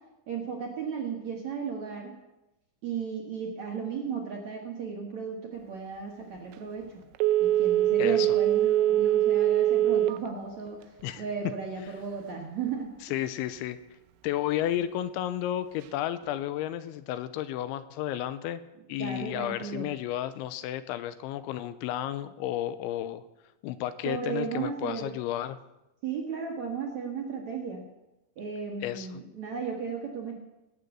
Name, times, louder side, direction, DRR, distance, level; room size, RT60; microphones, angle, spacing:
voice 1, 0.3-2.1 2.8-7.0 7.4-12.9 19.0-19.9 24.0-25.1 26.0-27.9 28.4-30.3, right 5 dB, 60° right, 0 dB, 2.0 m, -35 dB
Telephone, 7.2-10.3 10.7-10.8, right 13 dB, 85° right, 3.0 m, -23 dB
voice 2, 13.1-13.8 14.2-18.6 18.9-23.2 23.6-25.6 28.8-29.1, left 12 dB, 85° left, 13 dB, 3.0 m, -32 dB
19.5 x 6.9 x 8.0 m, 0.96 s
omnidirectional pair, 5.4 m